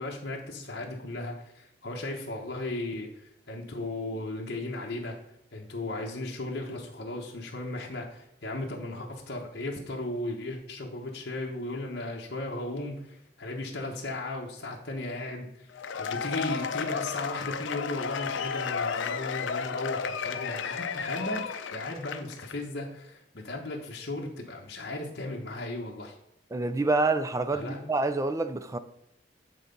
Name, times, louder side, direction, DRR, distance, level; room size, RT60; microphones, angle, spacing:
voice 1, 0.0-5.2 5.5-15.7 16.0-21.4 21.7-26.2 27.5-27.9, left 2 dB, 55° left, 1.2 m, -36 dB
Cheering / Applause / Crowd, 15.7-22.5, left 6 dB, 85° left, 0.5 m, -33 dB
voice 2, 26.5-28.8, right 3 dB, 15° right, 0.4 m, -27 dB
8.9 x 3.9 x 5.3 m
head